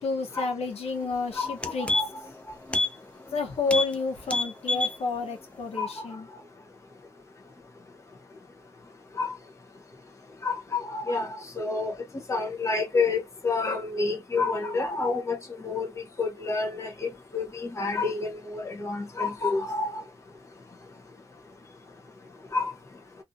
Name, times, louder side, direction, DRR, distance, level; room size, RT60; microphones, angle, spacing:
voice 1, 0.0-1.9 3.3-6.3, left 3 dB, 85° left, 0.8 m, -30 dB
sound 1, 1.0-1.1 1.4-2.3 2.7-2.9 3.2-3.4 3.7-3.9 4.2-5.0 5.3-5.4, left 2 dB, 10° left, 0.3 m, -27 dB
voice 2, 5.8-6.1 9.2-9.3 10.4-11.9 12.3-15.4 15.6-15.9 16.2-20.0 22.5-22.7, left 3 dB, 30° left, 0.7 m, -29 dB
2.5 x 2.5 x 2.5 m
wide cardioid pair, 155°, 10 cm